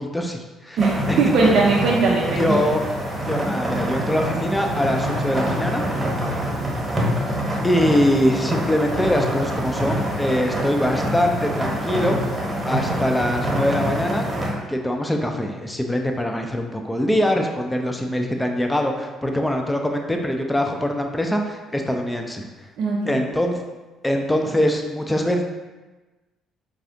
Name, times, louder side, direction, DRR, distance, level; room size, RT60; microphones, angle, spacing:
voice 1, 0.0-0.8 1.1-1.5 2.4-2.8 3.3-5.8 7.6-12.4 12.7-14.3 14.7-22.4 23.1-23.6 24.0-25.4, left 1 dB, 10° left, 3 dB, 0.4 m, -23 dB
sound 1, 0.8-14.5, equal, 20° right, 1.0 m, -26 dB
voice 2, 0.8-2.6 22.8-23.2, right 3 dB, 55° right, -3 dB, 0.4 m, -20 dB
4.8 x 2.3 x 2.6 m, 1.2 s
figure-of-eight pair, 45°, 0 cm